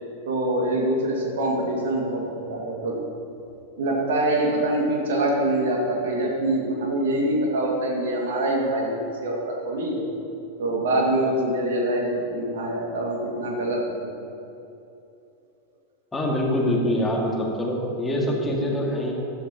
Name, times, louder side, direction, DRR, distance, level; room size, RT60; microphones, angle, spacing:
voice 1, 0.2-3.0 3.8-10.1 10.6-14.1 18.1-18.6, right 1 dB, 60° right, -1 dB, 2.2 m, -25 dB
voice 2, 16.1-19.1, left 1 dB, 15° left, -1 dB, 2.2 m, -24 dB
15.0 x 12.5 x 3.0 m, 2.8 s
figure-of-eight pair, 90°, 0 cm